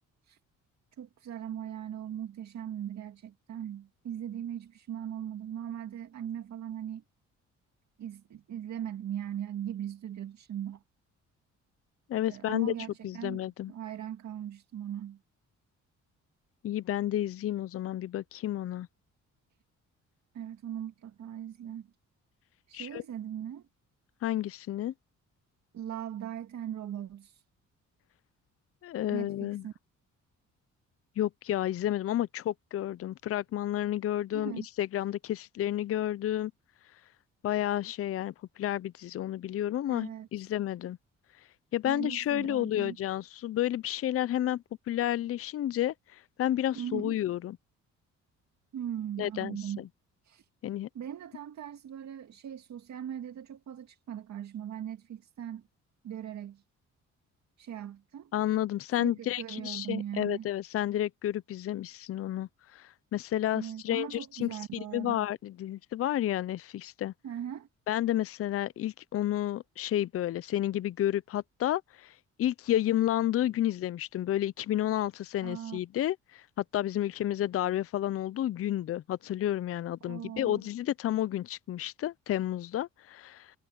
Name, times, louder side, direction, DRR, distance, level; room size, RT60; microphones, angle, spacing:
voice 1, 1.0-7.0 8.0-10.8 12.3-15.2 20.3-21.9 22.7-23.7 25.7-27.4 29.1-29.7 34.3-34.7 39.9-40.3 41.8-43.0 46.7-47.2 48.7-49.8 50.2-50.5 50.9-55.7 56.0-56.6 57.6-58.3 58.9-60.5 63.5-65.3 67.2-67.7 75.4-75.8 80.0-80.6, right 10 dB, 65° right, 2.2 m, -39 dB
voice 2, 12.1-12.7 13.0-13.7 16.6-18.9 22.7-23.0 24.2-24.9 28.8-29.6 31.2-34.5 34.8-36.5 37.4-41.0 41.7-47.6 49.2-49.9 50.6-50.9 58.3-67.1 67.9-72.1 72.4-83.5, left 12 dB, 50° left, 0.5 m, -31 dB
cardioid pair, 90°, 30 cm